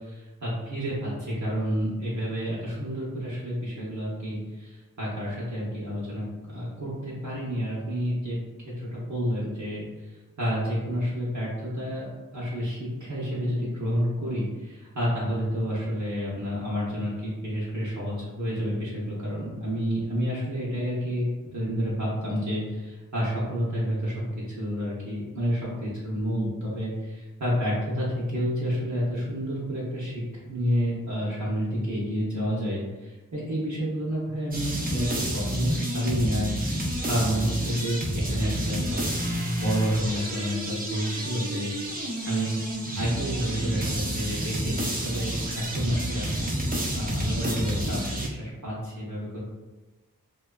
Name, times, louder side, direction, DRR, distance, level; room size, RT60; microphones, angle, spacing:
voice 1, 0.0-8.4 8.6-24.1 24.6-42.5 43.0-49.4, equal, 55° right, -7 dB, 0.8 m, -30 dB
sound 1, 34.5-48.3, right 1 dB, 25° right, 0.6 m, -30 dB
2.7 x 2.3 x 2.3 m, 1.2 s
wide cardioid pair, 50°, 34 cm